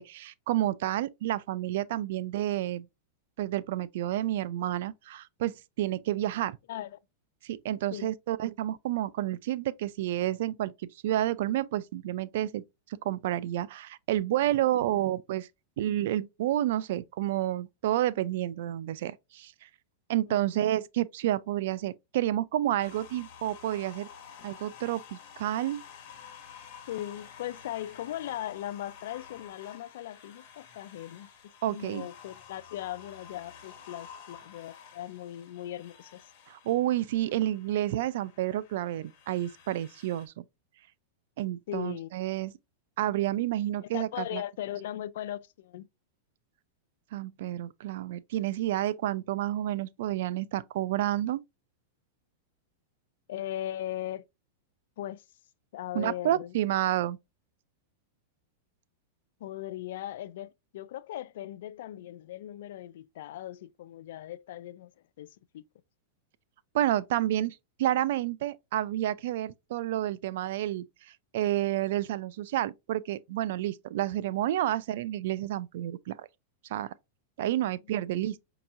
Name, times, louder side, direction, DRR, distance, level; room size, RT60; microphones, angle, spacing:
voice 1, 0.0-2.9 3.4-6.6 7.4-10.7 11.0-12.6 12.9-15.5 15.8-19.5 20.1-24.1 24.4-25.8 31.6-32.1 36.5-40.4 41.4-42.5 43.0-44.4 47.1-51.4 55.9-57.2 66.7-76.3 76.7-76.9 77.4-78.4, right 13 dB, 65° right, 0.3 m, -30 dB
voice 2, 6.7-7.0 7.9-8.1 20.3-20.4 26.9-31.3 31.6-36.2 41.7-42.1 43.8-45.9 53.3-54.2 55.0-55.2 55.7-56.6 59.4-64.9 65.2-65.7, left 13 dB, 70° left, 0.3 m, -38 dB
sound 1, 22.8-40.3, left 7 dB, 50° left, 1.2 m, -51 dB
5.3 x 2.9 x 2.5 m
hypercardioid pair, 125°, 0 cm